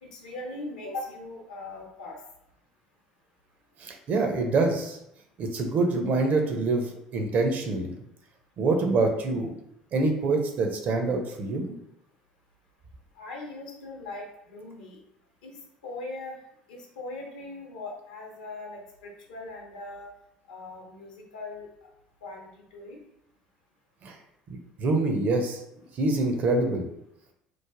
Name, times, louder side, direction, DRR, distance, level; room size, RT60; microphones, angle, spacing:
voice 1, 0.0-2.2 13.2-15.0 15.4-16.4 16.7-20.1 20.5-21.7 22.2-23.0, left 2 dB, 70° left, -1 dB, 0.6 m, -40 dB
voice 2, 3.8-5.0 5.4-7.9 8.6-9.5 9.9-11.8 24.0-24.1 24.5-25.6 26.0-26.8, right 3 dB, 40° right, 4 dB, 0.5 m, -25 dB
3.1 x 2.1 x 2.4 m, 0.78 s
figure-of-eight pair, 60°, 4 cm